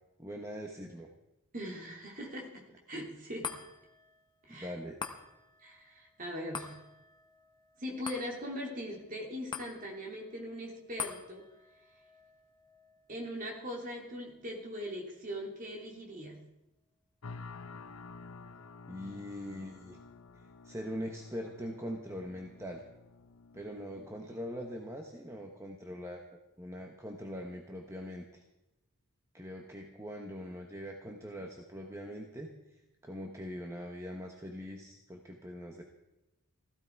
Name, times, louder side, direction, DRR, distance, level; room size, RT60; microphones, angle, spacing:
voice 1, 0.2-1.1 4.5-5.0 18.9-20.0 20.4-22.8 23.5-28.4 29.3-35.8, equal, 15° right, 2 dB, 1.1 m, -42 dB
voice 2, 1.5-3.6 4.4-4.7 5.6-6.8 7.8-11.5 13.1-16.4 23.9-24.2, equal, 35° right, 0 dB, 3.2 m, -41 dB
sound 1, 3.4-16.0 16.5-16.6, left 6 dB, 20° left, 1.1 m, -47 dB
sound 2, 17.2-24.1, left 4 dB, 70° left, 0.9 m, -50 dB
16.0 x 14.5 x 4.7 m, 0.95 s
head